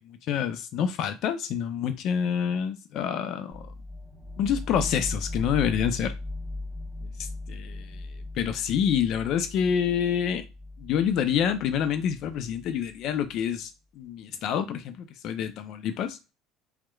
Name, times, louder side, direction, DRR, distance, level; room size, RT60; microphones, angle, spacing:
voice 1, 0.1-3.7 4.4-6.1 7.0-8.1 8.4-10.5 10.8-13.7 14.0-16.2, left 8 dB, 60° left, 0.4 m, -27 dB
sound 1, 3.5-13.3, left 2 dB, 5° right, 1.1 m, -38 dB
2.9 x 2.1 x 2.3 m
supercardioid pair, 85°, 0 cm